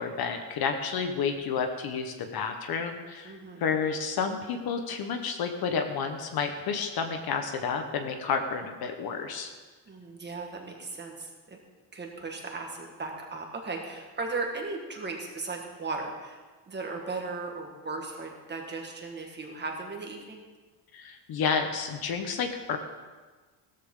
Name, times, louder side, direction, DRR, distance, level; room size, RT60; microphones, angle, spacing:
voice 1, 0.0-9.5 20.9-22.8, left 5 dB, 55° left, 6 dB, 1.2 m, -30 dB
voice 2, 3.2-3.6 9.9-11.6 11.9-16.4 16.7-20.4, right 3 dB, 25° right, 1 dB, 1.7 m, -37 dB
16.5 x 14.0 x 3.8 m, 1.3 s
cardioid pair, 160°, 44 cm